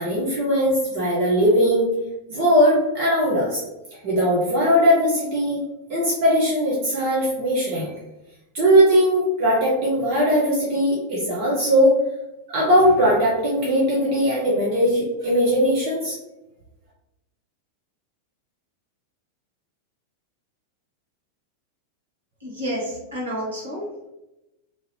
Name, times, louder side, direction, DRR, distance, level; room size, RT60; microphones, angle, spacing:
voice 1, 0.0-1.9 2.3-3.6 3.9-5.6 5.9-7.9 8.5-11.9 12.5-16.2, equal, 45° right, -6 dB, 0.9 m, -19 dB
voice 2, 22.4-24.1, equal, 70° right, -5 dB, 1.2 m, -30 dB
2.9 x 2.5 x 3.1 m, 0.96 s
figure-of-eight pair, 90°, 0 cm